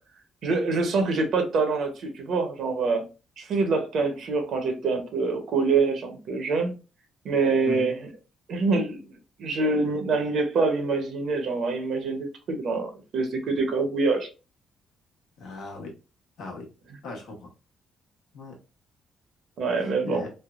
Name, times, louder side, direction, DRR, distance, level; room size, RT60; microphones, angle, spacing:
voice 1, 0.4-3.0 3.4-6.7 7.2-7.9 8.5-9.0 9.4-14.3 19.6-20.2, right 4 dB, 60° right, 0.7 m, -25 dB
voice 2, 15.4-15.9 16.4-16.7 17.0-17.5 18.3-18.6 20.0-20.3, left 3 dB, 75° left, 1.1 m, -37 dB
3.2 x 2.1 x 2.4 m
cardioid pair, 100°, 0 cm